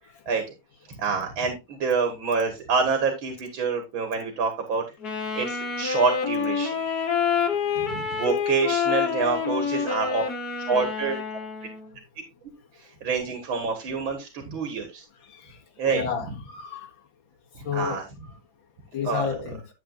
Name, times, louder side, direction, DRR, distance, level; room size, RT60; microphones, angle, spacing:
voice 1, 0.9-4.8 5.4-6.8 7.8-10.2 10.7-11.2 12.8-15.0 15.8-16.0 17.6-18.0 19.0-19.4, right 5 dB, 85° right, 2.4 m, -27 dB
Wind instrument woodwind instrument, 5.0-11.9, left 6 dB, 55° left, 1.8 m, -27 dB
voice 2, 15.2-15.6 15.9-16.9 17.6-18.0 18.9-19.7, left 7 dB, 80° left, 2.4 m, -31 dB
11.0 x 7.5 x 2.4 m
omnidirectional pair, 2.1 m